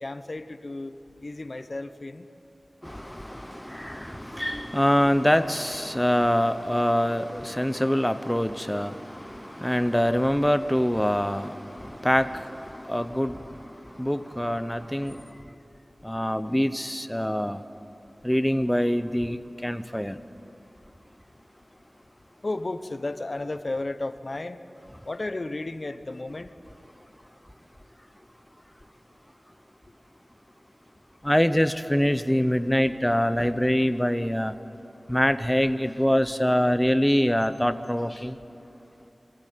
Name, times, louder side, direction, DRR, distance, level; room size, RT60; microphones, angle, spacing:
voice 1, 0.0-2.3 22.4-24.6 25.0-26.5, left 2 dB, 45° left, 11 dB, 1.0 m, -33 dB
voice 2, 2.8-13.7 14.0-15.2 16.0-17.6 18.2-20.2 31.2-34.5 35.1-38.4, equal, 5° left, 11 dB, 0.8 m, -25 dB
24.0 x 16.0 x 9.4 m, 2.8 s
wide cardioid pair, 75°, 0 cm